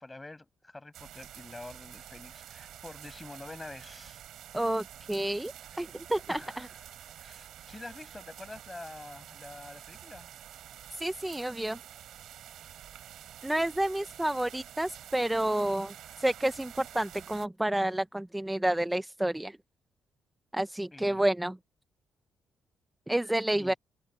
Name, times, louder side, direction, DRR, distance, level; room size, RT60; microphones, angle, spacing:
voice 1, 0.0-4.2 5.7-5.8 6.3-10.3 20.9-21.2 23.5-23.8, left 2 dB, 15° left, 6.6 m, -47 dB
sound 1, 0.9-17.5, right 11 dB, 75° right, 5.0 m, -49 dB
voice 2, 4.5-6.7 11.0-11.8 13.4-19.6 20.5-21.6 23.1-23.7, right 1 dB, 10° right, 0.7 m, -30 dB
cardioid pair, 90°, 0 cm